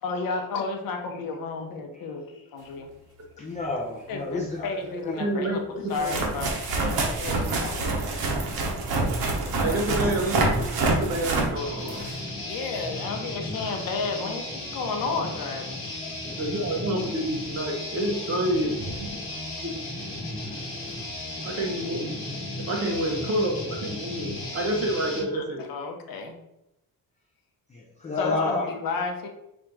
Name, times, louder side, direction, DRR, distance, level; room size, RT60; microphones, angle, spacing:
voice 1, 0.0-2.9 4.1-5.6 5.9-8.3 9.6-9.8 12.4-15.8 19.1-19.2 21.5-21.8 25.3-26.3 28.2-29.3, left 4 dB, 65° left, 4 dB, 0.7 m, -32 dB
voice 2, 3.4-4.7 5.0-5.3 10.0-10.3 27.7-28.8, left 3 dB, 20° left, -3 dB, 0.4 m, -30 dB
sound 1, 3.7-3.8 5.1-5.2 5.9-12.3 17.4-17.5 18.5-18.6 18.8-19.0 20.8-20.9, right 3 dB, 80° right, 1.0 m, -26 dB
voice 3, 5.2-6.2 9.6-12.0 16.4-19.1 19.6-19.7 21.4-22.3 22.7-25.6, right 1 dB, 40° right, 1 dB, 0.9 m, -28 dB
sound 2, 11.6-25.3, left 1 dB, 35° left, 1.0 m, -35 dB
4.3 x 2.5 x 4.6 m, 0.87 s
cardioid pair, 180°, 36 cm